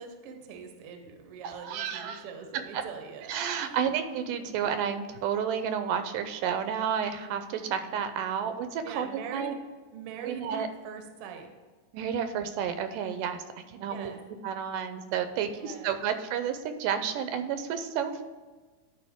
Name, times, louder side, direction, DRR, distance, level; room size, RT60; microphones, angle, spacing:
voice 1, 0.0-3.9 8.8-9.5 9.9-11.5 13.8-14.2 15.3-15.9, right 6 dB, 70° right, 5 dB, 1.4 m, -43 dB
voice 2, 1.5-2.2 2.7-2.8 3.3-9.5 10.2-10.7 11.9-14.1 14.4-18.2, right 8 dB, 85° right, 9 dB, 2.2 m, -31 dB
11.5 x 4.9 x 3.5 m, 1.3 s
omnidirectional pair, 3.7 m